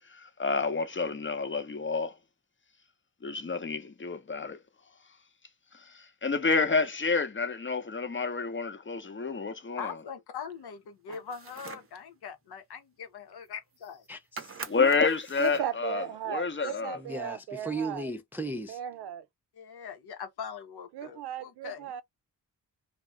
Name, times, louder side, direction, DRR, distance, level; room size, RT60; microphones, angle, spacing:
voice 1, 0.0-2.2 3.2-4.6 5.7-9.9 14.7-17.0, left 4 dB, 30° left, 0.8 m, -29 dB
voice 2, 9.8-14.1 16.6-16.8 19.6-21.9, left 7 dB, 65° left, 0.8 m, -42 dB
sound 1, 11.1-12.0 13.5-13.6 13.7-14.1 14.4-15.7, right 5 dB, 35° right, 0.7 m, -44 dB
voice 3, 14.1-14.7 16.9-18.8, right 2 dB, 5° right, 0.4 m, -36 dB
voice 4, 15.4-18.1 18.7-19.3 20.9-22.0, right 10 dB, 70° right, 0.6 m, -36 dB
2.3 x 2.1 x 3.4 m
supercardioid pair, 45°, 41 cm